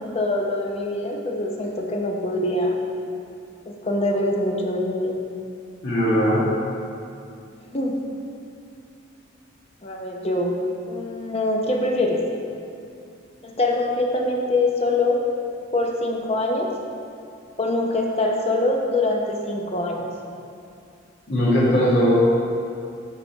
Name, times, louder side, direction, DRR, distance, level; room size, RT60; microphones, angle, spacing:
voice 1, 0.0-2.8 3.7-5.1 7.7-8.0 9.8-10.6 10.9-12.3 13.4-15.3 15.7-16.8 17.6-20.1, left 2 dB, 30° left, 1 dB, 0.8 m, -24 dB
voice 2, 5.8-6.4 21.3-22.1, equal, 55° left, -11 dB, 2.0 m, -19 dB
11.5 x 3.9 x 4.6 m, 2.5 s
head